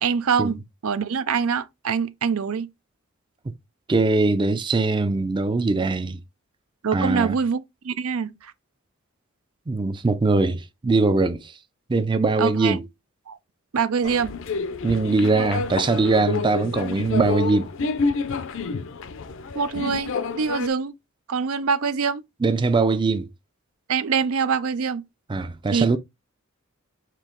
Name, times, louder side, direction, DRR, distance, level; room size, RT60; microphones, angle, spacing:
voice 1, 0.0-2.7 6.8-8.3 12.4-12.8 13.3-13.4 13.7-14.3 19.5-20.9 21.3-22.2 23.9-25.0 25.7-25.9, right 6 dB, 85° right, 0.5 m, -24 dB
voice 2, 3.9-6.2 6.9-7.3 9.7-11.5 11.9-12.9 14.8-17.7 22.4-23.3 25.3-26.0, right 3 dB, 20° right, 0.4 m, -21 dB
sound 1, 14.0-20.7, left 4 dB, 65° left, 0.5 m, -29 dB
4.5 x 2.8 x 3.7 m
head